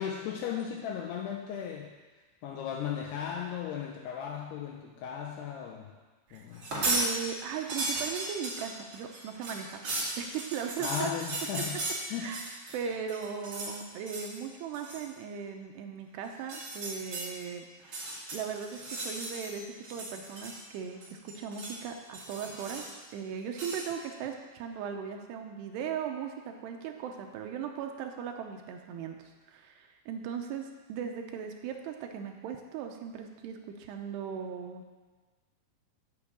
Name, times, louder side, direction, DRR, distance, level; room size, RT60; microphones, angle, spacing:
voice 1, 0.0-1.9 2.4-6.0 6.3-6.6 10.8-11.8 12.1-12.4, left 8 dB, 80° left, 1 dB, 2.4 m, -36 dB
sound 1, 6.5-7.1 7.4-12.8 13.1-13.7 14.1-14.4 14.7-15.0 16.4-17.3 17.8-19.5 19.8-20.8 21.0-21.8 22.1-23.0 23.5-23.9, right 2 dB, 40° right, 1.9 m, -36 dB
voice 2, 6.9-9.9 10.2-11.1 12.2-12.4 12.7-22.9 23.1-35.0, right 7 dB, 80° right, 4 dB, 2.6 m, -38 dB
8.3 x 6.2 x 7.4 m, 1.3 s
omnidirectional pair, 5.3 m